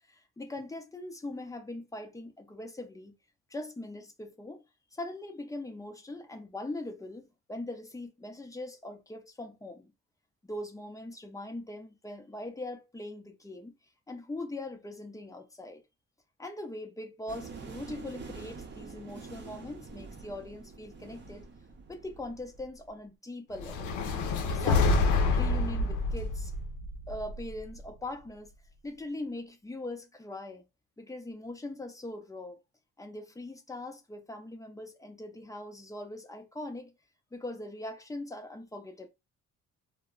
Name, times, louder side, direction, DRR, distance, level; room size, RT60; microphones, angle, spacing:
voice 1, 0.1-3.2 3.5-4.6 4.9-9.9 10.4-13.7 14.1-15.8 16.4-21.5 21.9-23.9 24.5-26.5 27.1-28.5 28.8-30.6 31.0-32.6 33.0-36.9 37.3-39.1, left 1 dB, 10° left, 0.6 m, -41 dB
sound 1, 17.3-22.9, right 4 dB, 35° right, 0.7 m, -46 dB
sound 2, 23.6-27.8, left 3 dB, 80° left, 0.6 m, -27 dB
2.1 x 2.1 x 3.7 m
cardioid pair, 90°, 30 cm